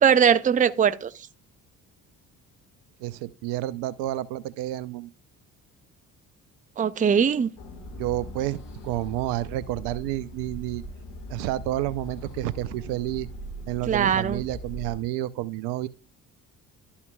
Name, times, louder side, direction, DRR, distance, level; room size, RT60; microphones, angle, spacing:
voice 1, 0.0-1.1 6.8-7.5 13.9-14.4, right 7 dB, 20° right, 0.5 m, -20 dB
voice 2, 3.0-5.1 8.0-8.6 8.8-10.8 11.3-13.3 13.7-15.9, right 15 dB, 65° right, 0.6 m, -30 dB
sound 1, 7.6-15.0, equal, 65° left, 1.6 m, -40 dB
12.0 x 5.6 x 2.3 m
hypercardioid pair, 50°, 44 cm